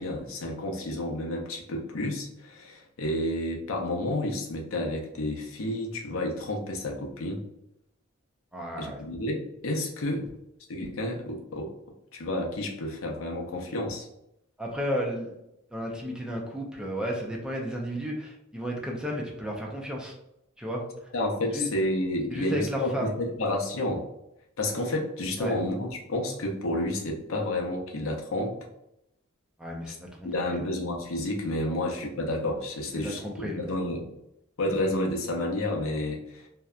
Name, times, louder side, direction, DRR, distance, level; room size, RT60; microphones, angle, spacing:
voice 1, 0.0-7.4 8.8-10.3 10.7-11.7 12.1-14.1 21.1-24.0 24.6-28.5 29.9-30.0 30.2-34.1 34.6-36.5, left 1 dB, 80° left, 0 dB, 0.6 m, -30 dB
voice 2, 8.5-9.0 14.6-15.3 15.7-20.1 20.6-20.8 21.4-21.7 22.3-23.2 25.4-25.5 29.6-30.6 32.9-33.8, equal, 5° right, -1 dB, 0.4 m, -33 dB
2.7 x 2.1 x 2.3 m, 0.82 s
head